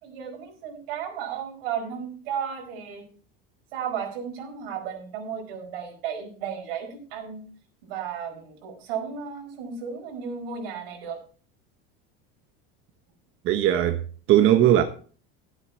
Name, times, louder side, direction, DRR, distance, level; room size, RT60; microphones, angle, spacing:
voice 1, 0.0-3.1 3.7-7.5 7.9-11.2, right 7 dB, 90° right, 4.8 m, -34 dB
voice 2, 13.5-14.0 14.3-14.8, right 11 dB, 45° right, 1.1 m, -18 dB
14.0 x 8.2 x 4.5 m
cardioid pair, 145°, 29 cm